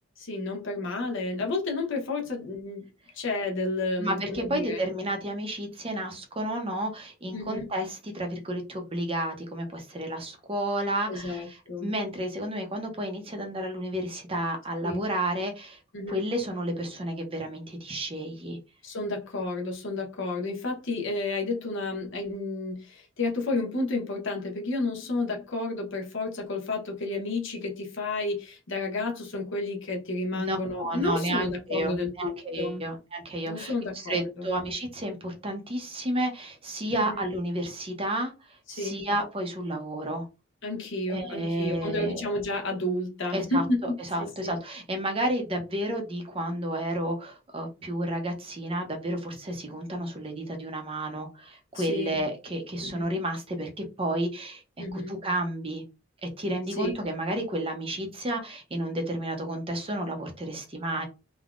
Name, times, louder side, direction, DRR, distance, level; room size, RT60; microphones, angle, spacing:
voice 1, 0.2-2.8 3.1-4.8 7.3-7.7 11.1-11.9 14.8-15.1 15.9-16.2 18.8-32.8 33.5-34.5 36.9-37.2 38.7-39.0 40.6-44.6 51.7-52.2 52.8-53.1 54.8-55.1 56.8-56.9, left 2 dB, 70° left, 0.9 m, -31 dB
voice 2, 4.0-15.8 16.1-18.6 30.3-38.3 38.7-40.3 41.1-42.3 43.3-43.6 44.0-54.6 54.9-55.8 56.2-61.1, right 1 dB, 30° right, 0.7 m, -31 dB
3.5 x 2.2 x 2.4 m
head